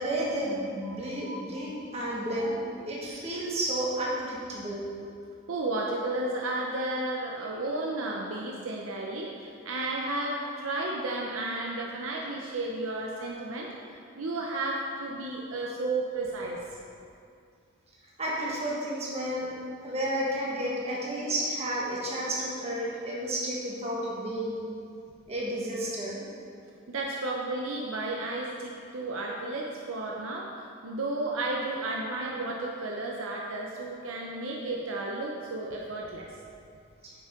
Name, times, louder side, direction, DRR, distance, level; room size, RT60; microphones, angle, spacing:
voice 1, 0.0-4.9 18.2-19.5 19.8-24.6 25.3-26.2 37.0-37.1, right 1 dB, 30° right, -5 dB, 1.5 m, -31 dB
voice 2, 5.5-16.6 26.9-36.3, right 2 dB, 65° right, -2 dB, 0.7 m, -33 dB
8.9 x 5.9 x 3.8 m, 2.4 s
head